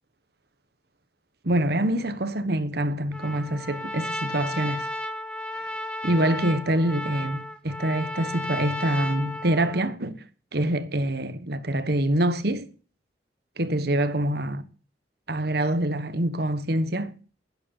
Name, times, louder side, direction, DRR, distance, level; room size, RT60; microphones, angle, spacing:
voice 1, 1.4-4.9 6.0-10.2 10.5-12.7 13.6-14.6 15.3-17.1, right 1 dB, 60° right, 1.3 m, -25 dB
Trumpet, 3.1-9.9, left 1 dB, 5° left, 1.2 m, -34 dB
11.0 x 9.7 x 7.1 m
head